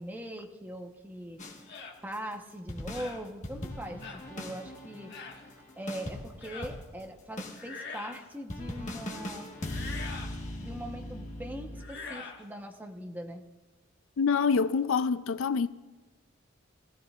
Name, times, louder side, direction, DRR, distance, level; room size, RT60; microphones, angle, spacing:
voice 1, 0.0-1.4 2.0-4.0 4.3-5.1 5.8-9.5 10.6-13.4, equal, 10° right, 1.0 m, -41 dB
sound 1, 1.4-1.7 2.1-2.2 2.7-7.1 7.4-7.6 8.1-8.2 8.5-11.8, left 1 dB, 35° left, 1.4 m, -40 dB
sound 2, 1.7-2.0 2.9-3.2 4.0-4.2 5.1-5.4 6.4-6.7 7.5-8.3 9.6-10.3 11.8-12.4, left 4 dB, 55° left, 1.6 m, -43 dB
voice 2, 14.2-15.7, left 5 dB, 75° left, 0.4 m, -26 dB
19.5 x 15.0 x 2.4 m
head